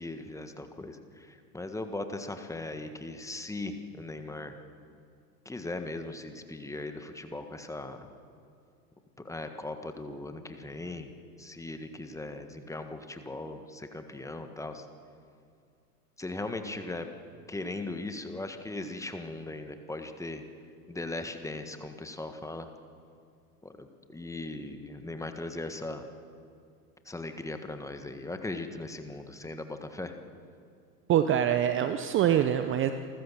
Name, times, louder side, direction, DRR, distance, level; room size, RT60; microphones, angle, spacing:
voice 1, 0.0-4.5 5.4-8.1 9.2-11.1 11.4-14.8 16.2-17.1 17.5-20.4 20.9-22.7 23.6-23.9 24.1-26.0 27.0-30.1, left 2 dB, 5° left, 7 dB, 1.5 m, -38 dB
voice 2, 31.1-32.9, right 10 dB, 25° right, 9 dB, 0.8 m, -24 dB
28.0 x 14.5 x 7.2 m, 2.4 s
hypercardioid pair, 110°, 47 cm